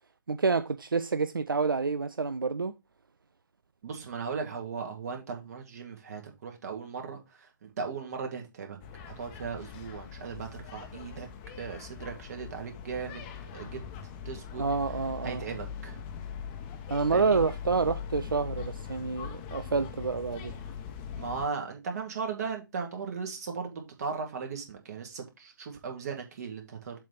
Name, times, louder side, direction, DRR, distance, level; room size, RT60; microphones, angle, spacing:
voice 1, 0.3-2.7 14.6-15.4 16.9-20.5, right 4 dB, 85° right, 0.5 m, -28 dB
voice 2, 3.8-8.8 9.2-11.3 11.6-13.2 13.5-13.8 14.3-14.7 15.2-16.0 17.1-17.5 21.2-27.0, right 5 dB, 50° right, 2.3 m, -37 dB
sound 1, 8.8-21.4, left 7 dB, 25° left, 1.0 m, -41 dB
7.3 x 3.3 x 5.6 m
figure-of-eight pair, 135°, 11 cm